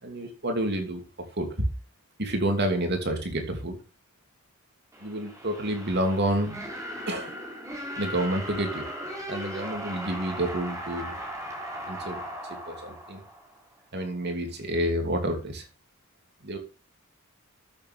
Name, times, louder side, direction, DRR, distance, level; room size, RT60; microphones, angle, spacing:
voice 1, 0.0-1.0 1.3-1.7 2.2-3.8 5.0-6.6 7.1-7.3 8.0-8.9 9.3-11.2 11.9-12.2 12.5-13.2 13.9-15.6 16.4-16.6, right 1 dB, 50° right, 4 dB, 2.8 m, -29 dB
sound 1, 4.9-13.8, equal, 15° right, 3.5 m, -38 dB
12.5 x 7.3 x 3.5 m, 0.32 s
head